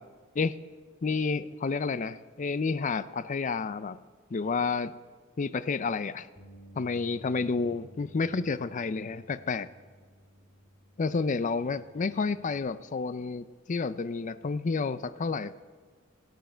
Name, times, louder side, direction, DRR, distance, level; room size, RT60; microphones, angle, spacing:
voice 1, 1.0-4.0 4.3-4.9 5.4-6.3 6.8-9.7 11.0-15.5, left 4 dB, 40° left, 14 dB, 0.4 m, -30 dB
Bass guitar, 6.3-12.6, equal, 5° right, 4.1 m, -55 dB
18.0 x 9.4 x 4.5 m, 1.5 s
head